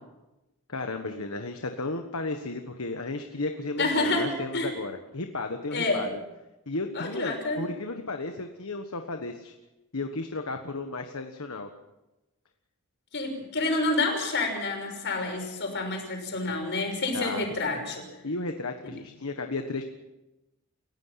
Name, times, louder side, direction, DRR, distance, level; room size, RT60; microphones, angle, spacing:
voice 1, 0.7-6.2 6.7-9.5 9.9-11.7 17.1-17.4 18.2-19.9, left 3 dB, 70° left, 5 dB, 1.4 m, -34 dB
voice 2, 3.8-4.7 5.7-6.1 6.9-7.7 13.1-18.1, left 2 dB, 55° left, 3 dB, 6.1 m, -28 dB
29.5 x 16.0 x 5.9 m, 1.0 s
head